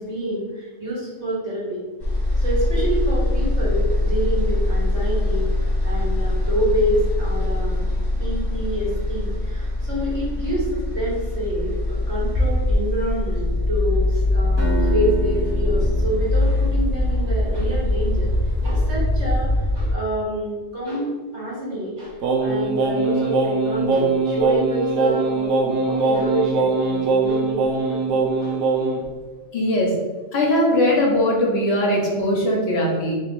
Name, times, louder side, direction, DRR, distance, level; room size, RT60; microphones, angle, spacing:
voice 1, 0.0-1.8 2.4-5.5 5.8-7.8 8.2-18.3 18.6-28.6, equal, 60° right, -6 dB, 1.7 m, -27 dB
sound 1, 2.0-19.9, left 1 dB, 25° left, 0.7 m, -22 dB
Acoustic guitar, 14.6-17.6, right 3 dB, 20° right, 1.2 m, -31 dB
Singing, 22.2-29.0, right 3 dB, 85° right, 1.1 m, -21 dB
voice 2, 29.5-30.0 30.3-33.2, left 1 dB, 60° left, -2 dB, 1.0 m, -20 dB
3.2 x 3.0 x 4.5 m, 1.4 s
omnidirectional pair, 1.3 m